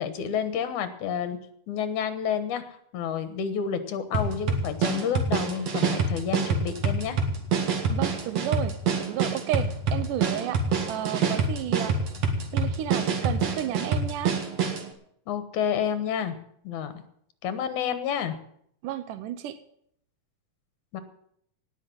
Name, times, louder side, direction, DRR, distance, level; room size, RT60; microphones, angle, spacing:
voice 1, 0.0-1.4 1.7-2.6 2.9-7.2 15.3-16.4 16.6-17.0 17.4-18.4 20.9-21.0, left 8 dB, 75° left, 11 dB, 2.6 m, -29 dB
sound 1, 4.1-14.9, right 4 dB, 55° right, 2.7 m, -26 dB
voice 2, 7.9-12.0 12.5-14.4 18.8-19.6, right 11 dB, 85° right, 11 dB, 2.4 m, -32 dB
18.5 x 6.2 x 9.4 m, 0.69 s
omnidirectional pair, 3.6 m